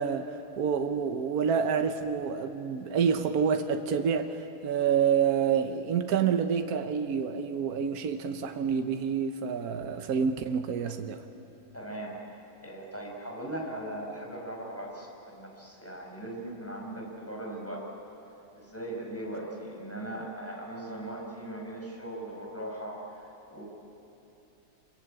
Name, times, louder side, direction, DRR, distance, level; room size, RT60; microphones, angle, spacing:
voice 1, 0.0-11.2, right 7 dB, 75° right, 1.4 m, -28 dB
voice 2, 11.7-17.9 18.5-23.6, right 1 dB, 10° left, 5.4 m, -39 dB
28.0 x 22.5 x 8.9 m
omnidirectional pair, 1.6 m